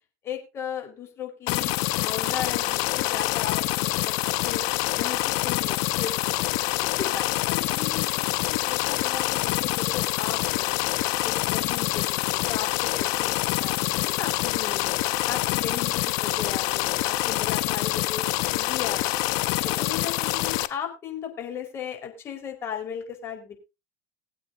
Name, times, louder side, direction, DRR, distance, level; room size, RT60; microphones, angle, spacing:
voice 1, 0.2-4.6 5.0-6.4 6.8-10.8 11.2-14.9 15.2-19.3 19.6-23.6, left 8 dB, 40° left, 4 dB, 4.7 m, -36 dB
sound 1, 1.5-20.7, left 18 dB, 65° left, 1.0 m, -26 dB
21.5 x 8.3 x 2.8 m, 0.26 s
hypercardioid pair, 95°, 7 cm